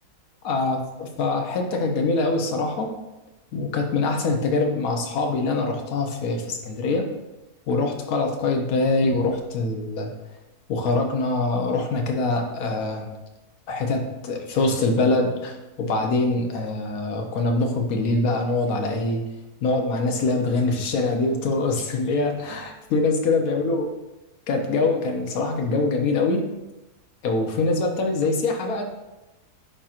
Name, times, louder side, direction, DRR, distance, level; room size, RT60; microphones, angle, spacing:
voice 1, 0.4-2.9 3.5-7.1 7.7-10.1 10.7-13.1 13.7-19.2 19.6-23.8 24.5-26.5 27.2-28.8, left 3 dB, 65° left, 3 dB, 1.3 m, -24 dB
10.5 x 4.3 x 2.5 m, 1.0 s
omnidirectional pair, 1.7 m